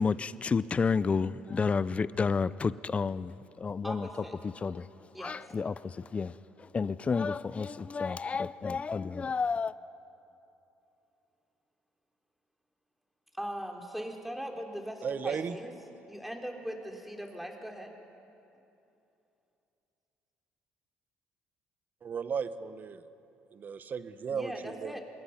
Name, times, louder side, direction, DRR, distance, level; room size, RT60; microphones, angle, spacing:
voice 1, 0.0-4.1 4.6-4.9 5.2-9.7, left 5 dB, 30° left, 0.5 m, -31 dB
voice 2, 3.8-4.4 5.1-5.4 13.4-15.7 16.1-17.9 24.3-25.0, equal, 5° right, 3.4 m, -40 dB
voice 3, 15.0-15.6 22.0-23.0 23.5-25.0, right 6 dB, 45° right, 1.1 m, -35 dB
26.5 x 21.5 x 5.9 m
supercardioid pair, 75°, 4 cm